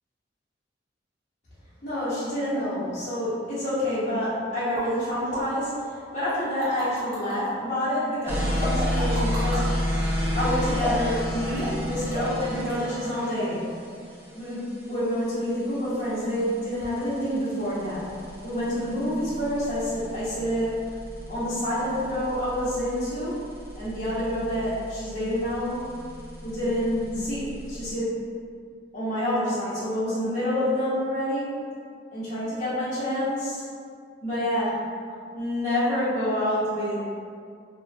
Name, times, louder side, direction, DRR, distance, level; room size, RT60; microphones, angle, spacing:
voice 1, 1.8-5.7 6.1-9.7 10.3-13.7 14.3-18.1 18.4-20.7 21.3-23.3 23.8-25.8 26.4-28.1 28.9-31.5 32.1-33.6 34.2-34.7 35.3-37.0, equal, 40° left, -12 dB, 0.9 m, -27 dB
sound 1, 4.7-4.9 5.3-5.4 6.3-7.4 8.6-9.6 10.8-11.1 11.6-11.8 12.1-12.4 12.7-12.8, left 1 dB, 45° right, 0.8 m, -33 dB
sound 2, 8.3-27.9, left 1 dB, 10° right, 0.4 m, -32 dB
2.9 x 2.2 x 2.6 m, 2.2 s
head